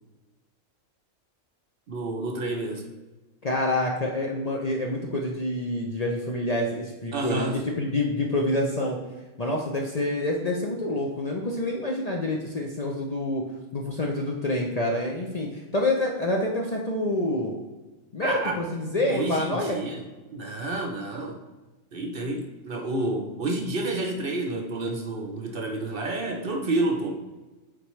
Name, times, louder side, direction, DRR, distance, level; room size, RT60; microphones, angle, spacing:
voice 1, 1.9-2.9 7.1-7.6 18.2-18.6 19.1-20.0 20.3-21.4 21.9-27.2, right 2 dB, 55° right, 3 dB, 0.8 m, -29 dB
voice 2, 3.4-9.0 9.4-13.4 13.7-17.5 18.1-19.8, left 1 dB, 40° left, -1 dB, 0.6 m, -27 dB
8.7 x 3.7 x 3.1 m, 1.2 s
omnidirectional pair, 1.3 m